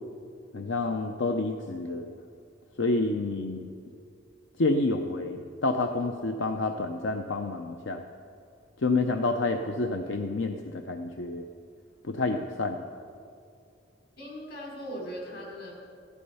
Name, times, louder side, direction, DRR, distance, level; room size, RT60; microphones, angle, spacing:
voice 1, 0.5-2.1 2.8-3.7 4.6-8.0 8.8-11.4 12.0-12.9, left 2 dB, 85° left, 6 dB, 0.6 m, -29 dB
voice 2, 14.2-15.7, equal, 55° left, -1 dB, 4.2 m, -39 dB
14.5 x 12.0 x 5.5 m, 2.5 s
head